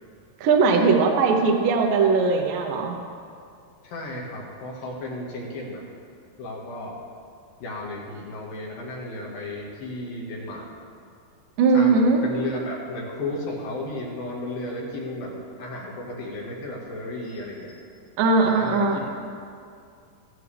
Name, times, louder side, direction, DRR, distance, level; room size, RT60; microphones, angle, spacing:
voice 1, 0.4-2.9 11.6-12.2 18.2-19.0, right 4 dB, 70° right, 2 dB, 2.4 m, -19 dB
voice 2, 3.8-5.8 6.4-7.0 7.6-10.7 11.7-17.8 18.4-19.0, left 2 dB, 65° left, -3 dB, 3.3 m, -34 dB
15.0 x 15.0 x 3.4 m, 2.4 s
omnidirectional pair, 4.6 m